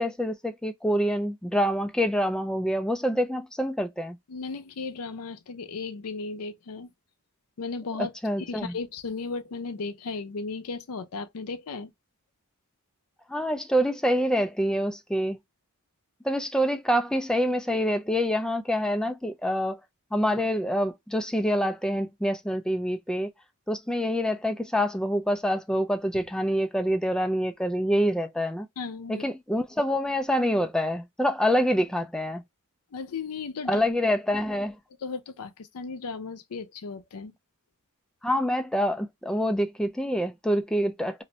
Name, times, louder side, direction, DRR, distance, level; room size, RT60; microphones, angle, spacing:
voice 1, 0.0-4.2 8.0-8.7 13.3-15.4 16.2-19.8 20.1-23.3 23.7-28.7 29.1-32.4 33.7-34.8 38.2-41.2, equal, 5° left, 0.3 m, -26 dB
voice 2, 4.3-6.9 7.6-8.1 8.4-11.9 28.8-29.2 32.9-33.8 35.0-37.3, left 4 dB, 85° left, 0.5 m, -35 dB
2.5 x 2.1 x 3.8 m
head